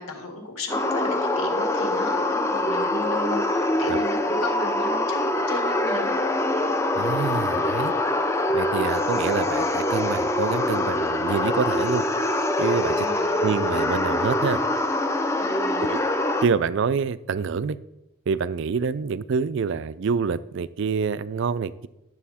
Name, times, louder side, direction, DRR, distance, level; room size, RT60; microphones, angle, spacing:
voice 1, 0.0-6.2 12.9-13.4 15.4-16.0, left 2 dB, 75° left, 3 dB, 2.0 m, -35 dB
sound 1, 0.7-16.5, left 1 dB, 10° left, 0.5 m, -24 dB
voice 2, 6.9-7.9 8.5-12.0 12.6-12.9 13.4-14.6 15.8-16.0 16.4-17.8 18.3-21.9, right 5 dB, 55° right, 16 dB, 0.3 m, -26 dB
11.5 x 6.8 x 4.2 m, 0.93 s
head